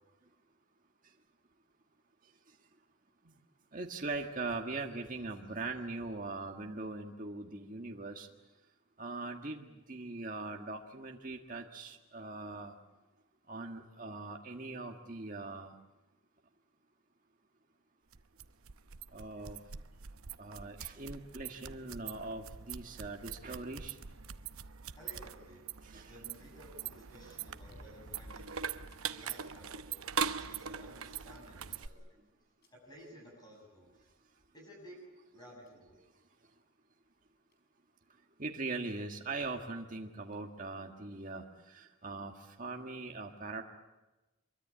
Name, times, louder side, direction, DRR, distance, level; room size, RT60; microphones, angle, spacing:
voice 1, 3.7-8.3 9.0-12.8 13.5-15.7 19.1-19.6 20.4-24.0 25.8-26.1 38.4-43.6, right 3 dB, 40° right, 2 dB, 1.6 m, -41 dB
sound 1, 18.1-31.9, right 7 dB, 80° right, 0.8 m, -42 dB
voice 2, 25.0-25.6 26.1-28.6 29.1-32.3 32.7-34.1 34.5-35.0 35.3-36.0, equal, 20° left, 0 dB, 7.3 m, -55 dB
sound 2, 25.4-25.5 27.4-29.1 29.5-29.6 30.1-30.2 30.5-31.6 32.6-32.7 34.2-34.3 34.8-34.9 35.7-35.9 37.2-37.3 37.5-37.6 39.3-39.6 40.3-40.4, equal, 50° left, 5.1 m, -55 dB
24.5 x 23.5 x 8.6 m, 1.1 s
head